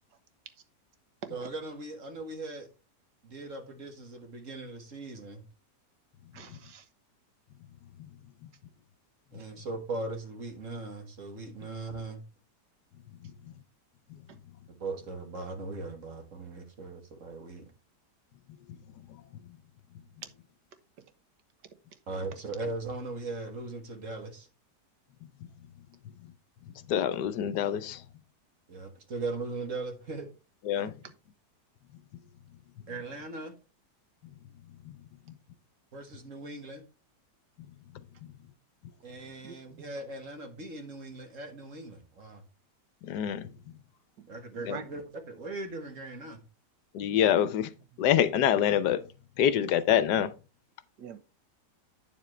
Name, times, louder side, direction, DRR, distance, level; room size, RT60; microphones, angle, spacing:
voice 1, 1.3-2.7 3.2-5.4 9.3-12.2 14.7-17.6 22.1-24.5 28.7-30.3 30.7-30.9 32.9-33.5 35.9-36.8 39.0-42.4 44.3-46.4, right 3 dB, 50° right, 1.9 m, -39 dB
voice 2, 6.3-6.8 39.4-39.9 44.7-44.8 47.3-47.5 51.0-51.2, right 7 dB, 75° right, 1.7 m, -43 dB
voice 3, 26.9-28.0 30.7-30.9 43.0-43.4 44.7-44.8 46.9-47.7 48.0-49.0 49.4-50.3, left 10 dB, 75° left, 1.2 m, -25 dB
9.1 x 7.2 x 3.2 m
omnidirectional pair, 1.8 m